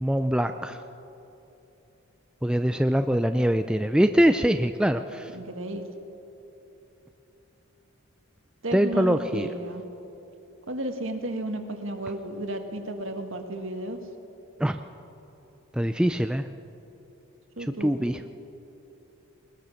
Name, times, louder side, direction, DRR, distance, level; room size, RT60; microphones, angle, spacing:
voice 1, 0.0-0.8 2.4-5.2 8.7-9.5 14.6-14.8 15.8-16.4 17.8-18.2, equal, 5° right, 8 dB, 0.3 m, -23 dB
voice 2, 5.3-5.9 8.6-9.8 10.7-14.0 17.6-18.1, right 1 dB, 60° right, 5 dB, 1.8 m, -33 dB
21.0 x 20.0 x 6.5 m, 3.0 s
head